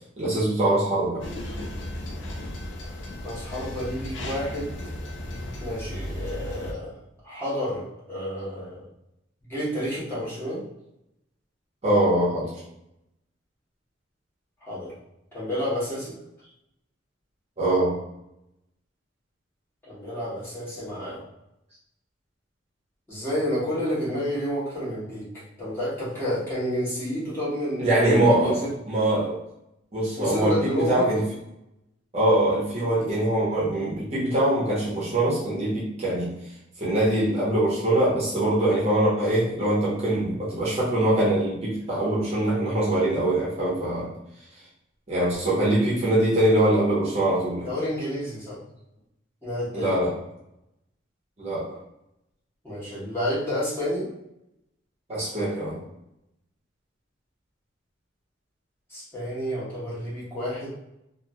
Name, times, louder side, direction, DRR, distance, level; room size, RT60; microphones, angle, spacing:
voice 1, 0.2-1.2 11.8-12.5 17.6-17.9 27.8-28.6 28.9-29.4 29.9-31.2 32.1-36.3 36.8-44.1 45.1-47.7 49.7-50.1 51.4-51.7 55.1-55.8, right 1 dB, 35° right, -7 dB, 0.8 m, -23 dB
sound 1, 1.2-6.7, left 1 dB, 70° left, 0.5 m, -35 dB
voice 2, 3.2-4.7 5.6-8.9 9.4-10.6 14.6-14.9 15.3-16.1 19.8-21.2 23.1-28.7 30.2-31.1 47.6-48.6 49.4-50.0 52.6-54.1 58.9-60.7, equal, 15° left, -11 dB, 1.2 m, -30 dB
2.9 x 2.6 x 2.2 m, 0.84 s
head